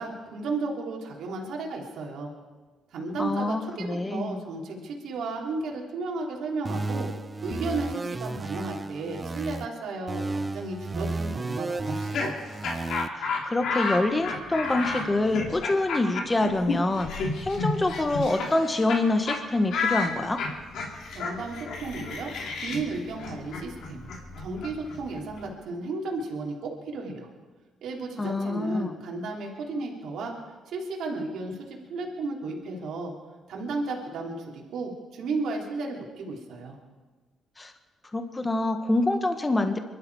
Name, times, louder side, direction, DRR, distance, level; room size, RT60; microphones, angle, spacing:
voice 1, 0.0-2.3 2.9-7.1 7.4-12.3 21.1-22.3 22.6-27.3 27.8-30.3 30.7-33.1 33.5-36.8, right 3 dB, 75° right, -1 dB, 3.1 m, -34 dB
voice 2, 3.2-4.4 13.1-20.4 28.2-28.9 37.6-37.7 38.1-39.8, left 2 dB, 20° left, 7 dB, 1.4 m, -26 dB
sound 1, 6.6-9.7 10.1-13.1, right 3 dB, 25° right, 0.7 m, -33 dB
Laughter, 11.8-19.0 19.3-19.4 19.7-25.4, left 4 dB, 75° left, 3.0 m, -31 dB
23.5 x 12.5 x 4.8 m, 1.3 s
cardioid pair, 90°, 0 cm